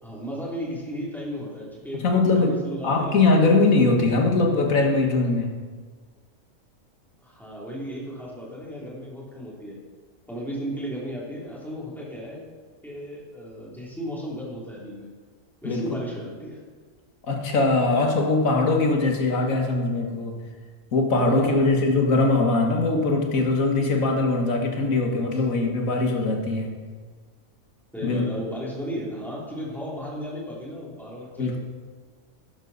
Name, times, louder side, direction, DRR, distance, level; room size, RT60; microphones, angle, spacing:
voice 1, 0.0-3.4 7.2-9.8 10.3-12.4 12.8-15.1 15.6-16.6 19.4-19.6 21.2-21.9 27.9-31.6, equal, ahead, -5 dB, 2.9 m, -35 dB
voice 2, 1.9-2.6 2.8-5.6 15.6-15.8 17.3-20.4 20.9-26.8 28.0-28.2 31.4-31.6, left 3 dB, 75° left, 2 dB, 1.9 m, -21 dB
12.0 x 11.0 x 4.1 m, 1.5 s
omnidirectional pair, 1.4 m